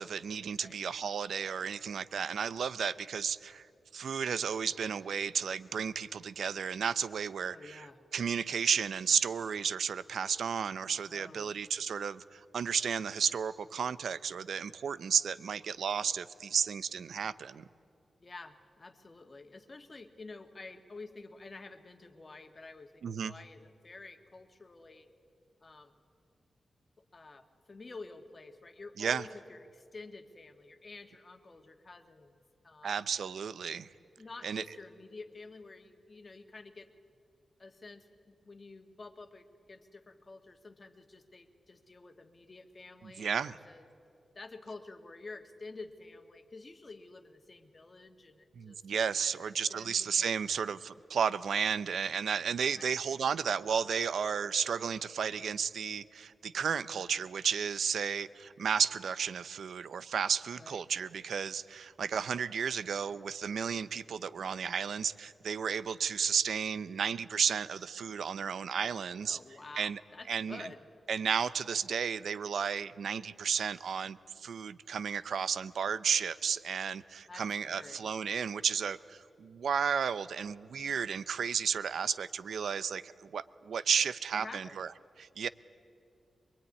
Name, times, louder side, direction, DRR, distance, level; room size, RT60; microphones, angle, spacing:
voice 1, 0.0-3.7 3.9-7.9 8.1-17.6 23.0-23.3 29.0-29.2 32.8-33.9 34.4-34.6 43.0-43.6 48.6-69.4 69.8-70.0 70.3-70.7 71.1-84.9 85.2-85.5, right 7 dB, 80° right, 15 dB, 0.7 m, -33 dB
voice 2, 7.4-8.0 11.1-11.6 18.2-25.1 25.6-25.9 27.1-33.1 34.2-36.9 37.6-43.9 44.3-48.8 49.2-50.6 52.8-53.0 60.6-60.8 69.2-70.9 77.3-78.1 84.3-84.8, left 3 dB, 40° left, 6 dB, 1.9 m, -50 dB
22.5 x 22.5 x 9.7 m, 2.5 s
cardioid pair, 80°, 0 cm